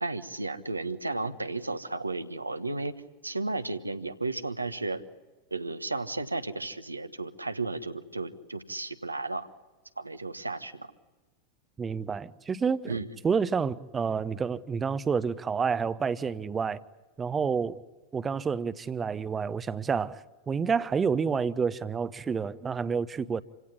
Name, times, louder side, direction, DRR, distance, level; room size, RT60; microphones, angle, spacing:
voice 1, 0.0-2.9 3.2-5.0 5.5-9.5 10.0-10.9 12.9-13.1, right 3 dB, 80° right, 1.3 m, -33 dB
voice 2, 11.8-16.8 17.2-17.8 18.1-20.2 20.5-23.4, right 6 dB, 20° right, 0.8 m, -29 dB
27.5 x 17.0 x 10.0 m
figure-of-eight pair, 90°, 0 cm